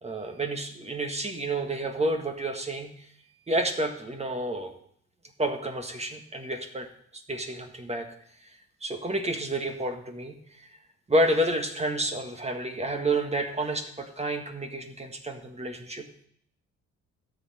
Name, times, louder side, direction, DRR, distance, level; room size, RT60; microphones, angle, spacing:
voice 1, 0.0-3.1 3.5-4.7 5.4-6.9 7.1-8.1 8.4-8.5 8.8-10.7 11.1-16.0, right 1 dB, 20° right, 4 dB, 1.5 m, -30 dB
12.5 x 7.7 x 4.3 m, 0.66 s
cardioid pair, 90°, 30 cm